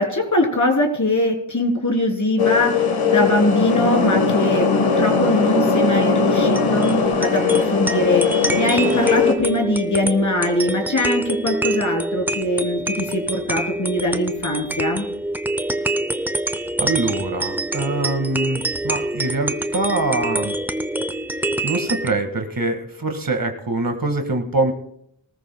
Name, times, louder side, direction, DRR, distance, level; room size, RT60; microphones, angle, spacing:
voice 1, 0.0-2.8 3.1-6.9 7.2-8.3 8.5-15.1, left 1 dB, 35° left, 2 dB, 3.7 m, -21 dB
sound 1, 2.4-9.4, left 5 dB, 70° left, 1.6 m, -19 dB
sound 2, 6.4-22.1, right 1 dB, 5° right, 0.7 m, -26 dB
voice 2, 16.8-20.5 21.3-21.4 21.6-24.7, right 2 dB, 40° right, 5 dB, 2.0 m, -24 dB
23.5 x 14.0 x 2.3 m, 0.73 s
cardioid pair, 45°, 50 cm